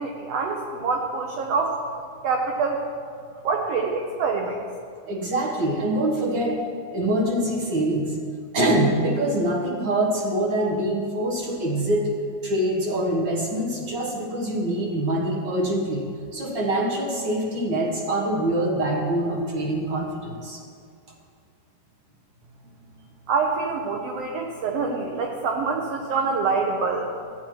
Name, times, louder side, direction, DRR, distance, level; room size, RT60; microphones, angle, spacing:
voice 1, 0.0-1.8 2.2-2.8 3.4-4.6 23.3-27.1, right 4 dB, 85° right, 1 dB, 1.3 m, -25 dB
voice 2, 5.1-6.6 6.9-8.2 8.5-12.1 12.4-20.6, right 1 dB, 65° right, -2 dB, 1.1 m, -24 dB
15.0 x 8.3 x 3.1 m, 2.3 s
omnidirectional pair, 3.7 m